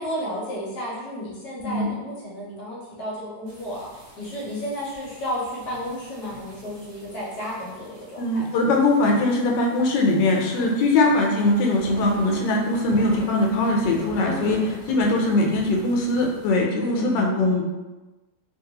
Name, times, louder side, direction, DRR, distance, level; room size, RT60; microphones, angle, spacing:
voice 1, 0.0-3.9 4.2-8.4 10.6-10.8 14.3-14.7 16.8-17.3, equal, 65° left, -5 dB, 1.2 m, -32 dB
sound 1, 3.5-16.5, right 1 dB, 80° right, 1.4 m, -42 dB
voice 2, 8.2-14.6 14.9-17.6, left 2 dB, 85° left, 0 dB, 1.3 m, -21 dB
3.2 x 2.3 x 2.8 m, 1.1 s
omnidirectional pair, 1.9 m